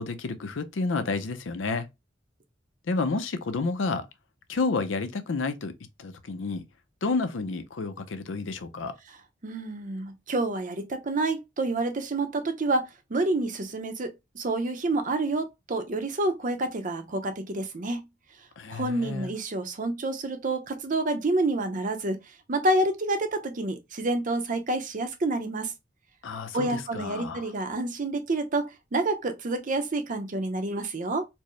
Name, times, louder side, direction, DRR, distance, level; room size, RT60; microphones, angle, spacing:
voice 1, 0.0-1.9 2.9-4.1 4.5-5.7 6.0-6.6 7.0-8.9 18.6-19.3 26.2-27.5, left 3 dB, 90° left, 0.5 m, -30 dB
voice 2, 9.4-18.0 18.7-22.2 22.5-25.7 26.5-31.3, right 2 dB, 45° right, 0.7 m, -28 dB
4.4 x 2.1 x 3.0 m
head